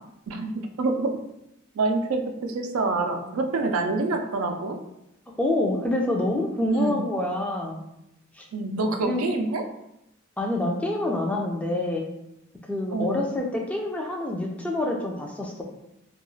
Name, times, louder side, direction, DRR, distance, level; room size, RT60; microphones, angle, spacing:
voice 1, 0.3-1.2 1.7-4.8 6.7-7.0 8.5-9.6 12.9-13.2, right 3 dB, 90° right, 4 dB, 0.4 m, -26 dB
voice 2, 5.4-7.8 8.4-8.5 9.0-9.3 10.4-12.1 12.7-15.6, left 1 dB, 5° left, 0 dB, 0.3 m, -27 dB
2.3 x 2.3 x 3.0 m, 0.83 s
head